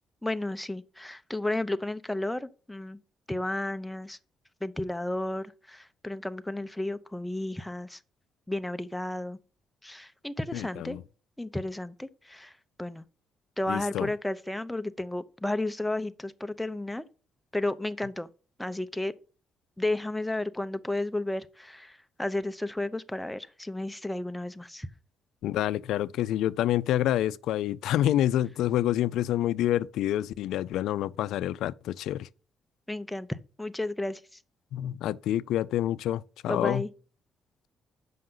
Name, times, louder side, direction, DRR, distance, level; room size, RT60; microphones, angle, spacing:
voice 1, 0.2-3.0 3.3-4.2 4.6-8.0 8.5-9.4 9.8-11.0 11.4-12.5 12.8-13.0 13.6-17.0 17.5-18.3 18.6-19.1 19.8-24.9 32.9-34.2 36.5-36.9, left 1 dB, 5° left, 0.6 m, -32 dB
voice 2, 10.5-11.0 13.7-14.1 25.4-32.3 34.7-36.8, left 12 dB, 85° left, 0.3 m, -27 dB
7.5 x 5.5 x 3.9 m
cardioid pair, 90°, 0 cm